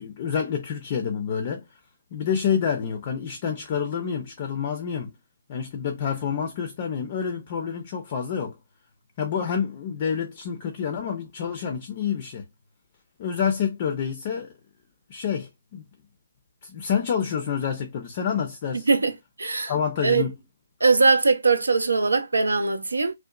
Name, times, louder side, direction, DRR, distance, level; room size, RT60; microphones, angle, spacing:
voice 1, 0.0-1.6 2.1-5.1 5.5-8.6 9.2-12.5 13.2-14.5 15.1-15.8 16.6-18.9 19.7-20.3, left 7 dB, 35° left, 0.4 m, -28 dB
voice 2, 19.4-19.7 20.0-20.3 20.8-23.1, right 4 dB, 70° right, 0.4 m, -21 dB
2.7 x 2.1 x 2.3 m
figure-of-eight pair, 135°, 0 cm